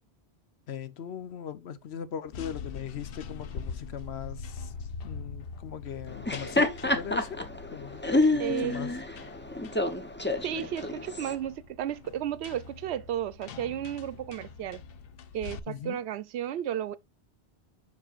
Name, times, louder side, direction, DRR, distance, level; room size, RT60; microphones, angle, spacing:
voice 1, 0.7-4.7 5.0-8.0 8.3-9.0 15.7-16.0, left 8 dB, 80° left, 1.1 m, -39 dB
sound 1, 2.3-15.6, left 5 dB, 65° left, 0.8 m, -43 dB
Laughter, 6.1-11.3, left 2 dB, 10° left, 0.7 m, -28 dB
voice 2, 8.4-8.7 10.4-14.8 15.3-17.0, right 10 dB, 85° right, 0.9 m, -33 dB
7.4 x 5.9 x 2.4 m
omnidirectional pair, 1.1 m